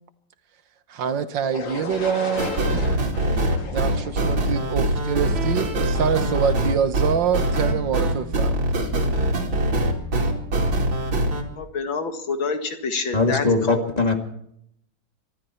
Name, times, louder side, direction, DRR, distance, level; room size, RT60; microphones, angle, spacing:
voice 1, 0.9-3.1 3.7-8.7, right 7 dB, 70° right, 1.7 m, -26 dB
sound 1, 1.5-5.4, left 4 dB, 70° left, 2.6 m, -35 dB
sound 2, 2.4-11.4, right 1 dB, 90° right, 3.3 m, -23 dB
voice 2, 11.6-13.8, left 4 dB, 85° left, 2.6 m, -27 dB
voice 3, 13.1-14.1, left 3 dB, 20° left, 2.2 m, -20 dB
24.5 x 13.0 x 4.4 m
omnidirectional pair, 2.1 m